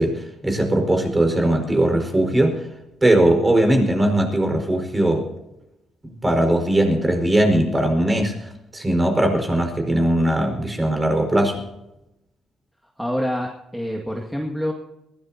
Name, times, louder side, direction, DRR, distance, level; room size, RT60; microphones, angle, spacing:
voice 1, 0.0-2.7 3.0-5.3 6.0-11.6, right 1 dB, 20° right, 4 dB, 4.9 m, -20 dB
voice 2, 13.0-14.7, equal, ahead, 0 dB, 2.0 m, -26 dB
22.5 x 16.5 x 2.8 m, 0.90 s
cardioid pair, 90°, 0 cm